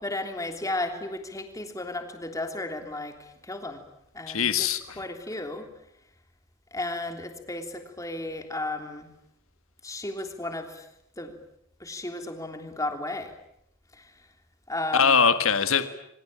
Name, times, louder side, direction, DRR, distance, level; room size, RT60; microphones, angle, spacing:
voice 1, 0.0-3.8 4.1-4.7 5.0-5.7 6.7-9.1 9.8-10.8 11.2-11.3 11.8-13.3 13.9-14.1 14.7-15.2, left 2 dB, 15° left, 5 dB, 3.3 m, -34 dB
voice 2, 4.3-5.0 14.9-15.9, left 6 dB, 65° left, 10 dB, 1.7 m, -22 dB
27.0 x 25.0 x 8.9 m, 0.80 s
head